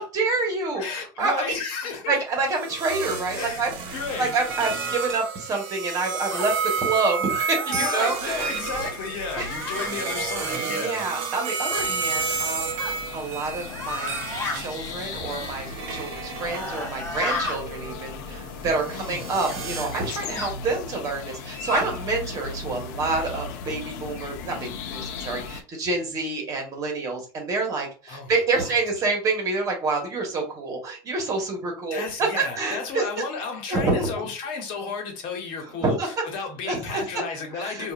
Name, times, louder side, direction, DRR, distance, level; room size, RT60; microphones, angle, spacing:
voice 1, 0.0-1.6 2.1-8.5 9.4-9.5 10.6-12.7 13.1-14.2 14.5-33.0 33.7-34.1 35.5-36.1 36.6-37.0 37.5-37.9, right 3 dB, 35° right, 1.5 m, -27 dB
voice 2, 0.7-2.2 3.3-4.4 7.7-11.0 18.8-19.3 21.3-21.4 28.1-28.3 28.6-28.8 31.9-37.9, left 5 dB, 55° left, 1.2 m, -33 dB
sound 1, 2.5-17.0 17.5-20.2, right 5 dB, 55° right, 1.1 m, -31 dB
sound 2, 6.3-6.5 7.3-8.2 9.2-9.9 11.7-11.9 12.8-13.0 13.7-14.6 16.3-17.6 19.4-19.6 20.3-20.5 21.3-21.8, left 3 dB, 25° left, 1.2 m, -32 dB
sound 3, 11.7-25.6, left 5 dB, 75° left, 0.6 m, -37 dB
4.7 x 2.6 x 2.5 m
cardioid pair, 150°, 10 cm